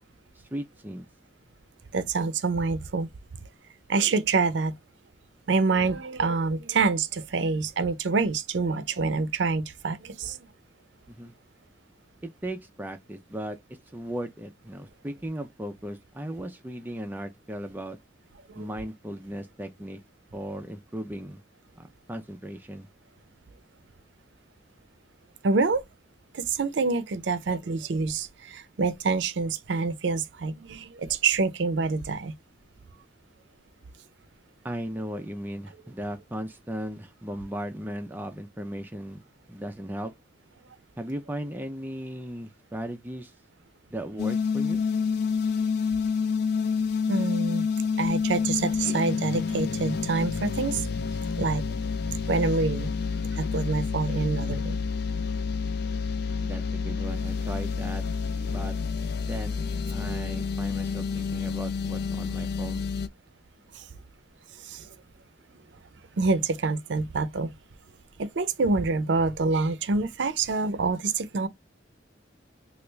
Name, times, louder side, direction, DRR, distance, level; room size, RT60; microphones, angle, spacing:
voice 1, 0.4-1.0 11.1-11.3 12.2-13.6 13.9-18.0 18.6-20.0 20.3-21.4 21.8-22.9 34.6-39.2 39.5-40.1 41.0-43.3 43.9-44.8 56.4-58.0 58.5-58.8 59.2-59.6 59.9-62.9, right 1 dB, 10° right, 0.4 m, -36 dB
voice 2, 1.9-3.1 3.9-4.7 5.5-10.5 18.5-18.7 25.4-25.8 26.3-32.3 47.1-47.7 48.0-51.0 51.3-51.6 52.3-52.9 53.3-54.8 63.7-63.8 64.6-64.9 66.2-67.5 68.2-71.5, right 4 dB, 70° right, 0.5 m, -26 dB
sound 1, 44.2-63.1, left 5 dB, 60° left, 0.4 m, -29 dB
3.3 x 2.4 x 3.1 m
head